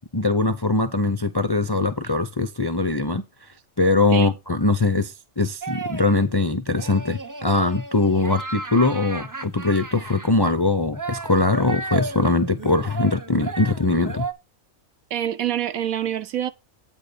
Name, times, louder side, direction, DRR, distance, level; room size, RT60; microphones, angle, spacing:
voice 1, 0.1-3.2 3.8-14.2, left 3 dB, 35° left, 0.4 m, -21 dB
sound 1, 5.6-6.3 6.7-10.3 10.9-14.3, right 3 dB, 25° right, 0.4 m, -34 dB
voice 2, 15.1-16.5, right 10 dB, 80° right, 1.2 m, -26 dB
9.0 x 3.9 x 6.8 m
omnidirectional pair, 1.5 m